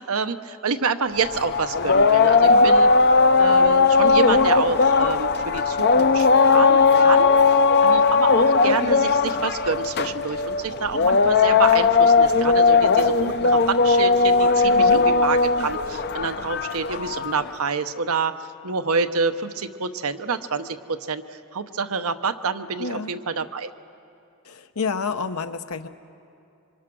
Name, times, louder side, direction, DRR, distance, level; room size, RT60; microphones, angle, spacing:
voice 1, 0.0-2.9 3.4-7.4 7.8-23.7, right 5 dB, 75° right, 9 dB, 0.9 m, -27 dB
sound 1, 1.1-17.5, left 4 dB, 45° left, 0.6 m, -18 dB
voice 2, 22.8-23.1 24.4-25.9, left 4 dB, 80° left, 9 dB, 1.0 m, -29 dB
26.5 x 25.0 x 6.2 m, 2.6 s
head